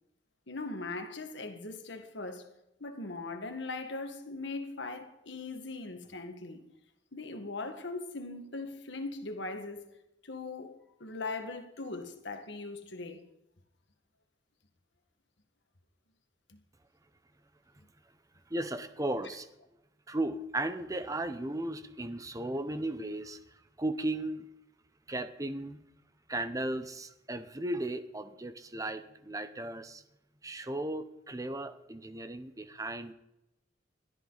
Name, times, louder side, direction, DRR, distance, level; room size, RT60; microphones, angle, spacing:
voice 1, 0.5-2.5 2.8-6.6 7.1-9.8 10.2-13.2 16.5-16.6, left 3 dB, 70° left, 1.8 m, -40 dB
voice 2, 18.5-19.5 20.1-23.4 23.8-24.5 25.1-25.8 26.3-30.0 30.4-33.1, right 1 dB, 20° right, 0.8 m, -35 dB
21.0 x 13.0 x 4.1 m
head